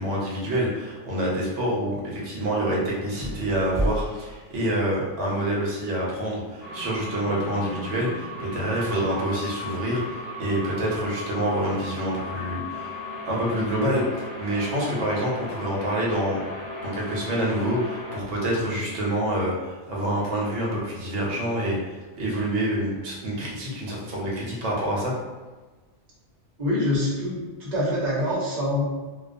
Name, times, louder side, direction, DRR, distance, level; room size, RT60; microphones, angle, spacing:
voice 1, 0.0-13.0 13.3-16.4 16.8-25.1, right 1 dB, 85° right, -4 dB, 1.0 m, -27 dB
sound 1, 3.1-5.3, equal, 25° right, 0.4 m, -32 dB
sound 2, 6.6-18.2, left 1 dB, 50° left, 0.8 m, -36 dB
voice 2, 26.6-28.8, left 1 dB, 45° right, -7 dB, 0.8 m, -25 dB
2.3 x 2.2 x 2.5 m, 1.3 s
omnidirectional pair, 1.2 m